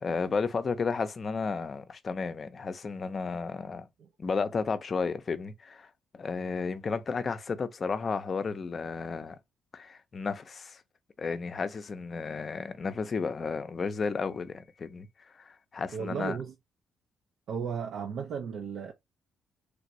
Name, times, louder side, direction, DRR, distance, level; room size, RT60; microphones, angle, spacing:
voice 1, 0.0-3.9 4.2-9.4 9.7-10.8 11.2-15.1 15.4-16.4, left 5 dB, 40° left, 0.5 m, -33 dB
voice 2, 15.9-16.5 17.5-18.9, right 6 dB, 70° right, 0.5 m, -35 dB
3.3 x 2.5 x 3.0 m
cardioid pair, 90°, 0 cm